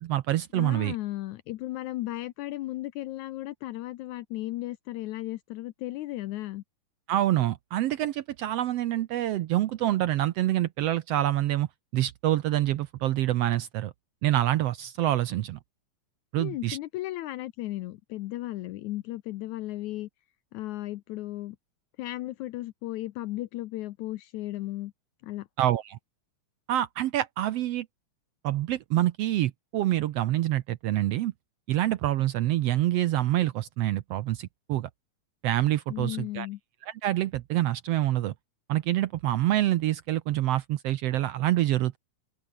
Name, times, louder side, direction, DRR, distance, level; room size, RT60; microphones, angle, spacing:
voice 1, 0.0-0.9 7.1-11.7 11.9-13.9 14.2-15.6 16.3-16.8 25.6-26.0 26.7-27.9 28.4-31.3 31.7-34.9 35.4-36.5 36.9-38.3 38.7-42.0, right 14 dB, 80° right, 1.4 m, -26 dB
voice 2, 0.5-6.6 16.4-20.1 20.5-21.6 22.0-24.9 25.2-25.5 35.9-36.6, left 16 dB, 75° left, 2.0 m, -35 dB
open air
omnidirectional pair, 3.7 m